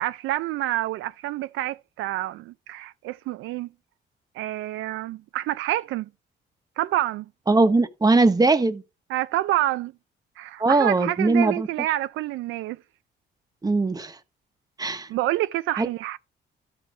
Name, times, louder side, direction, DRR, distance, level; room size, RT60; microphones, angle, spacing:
voice 1, 0.0-3.7 4.3-6.1 6.8-7.3 9.1-9.9 10.4-12.8 15.1-16.2, right 15 dB, 90° right, 0.5 m, -28 dB
voice 2, 7.5-8.8 10.6-11.7 13.6-14.2 14.8-15.1 15.8-15.9, right 3 dB, 20° right, 1.1 m, -20 dB
12.5 x 4.9 x 4.9 m
cardioid pair, 90°, 20 cm